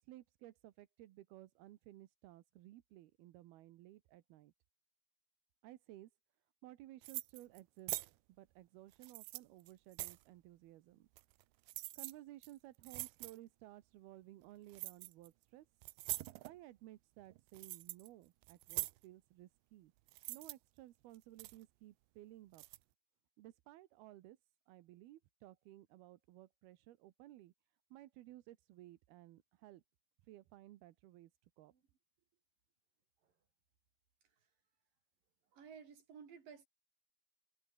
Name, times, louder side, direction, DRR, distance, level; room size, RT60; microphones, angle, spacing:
voice 1, 0.0-4.5 5.6-6.1 6.6-11.1 12.0-15.7 16.4-19.9 20.3-22.6 23.4-24.4 24.7-27.5 27.9-29.8 30.3-31.7, right 15 dB, 70° right, 2.7 m, -57 dB
sound 1, 7.0-7.6 7.9-8.1 8.9-10.2 11.2-11.4 11.7-12.1 12.4-12.5 12.8-13.4 14.7-15.3 15.8-16.6 17.2-18.1 18.4-19.0 20.1-20.5 21.1-21.6 22.5-22.8, right 20 dB, 85° right, 3.0 m, -44 dB
voice 2, 35.5-36.7, right 6 dB, 50° right, 5.5 m, -56 dB
omnidirectional pair, 5.1 m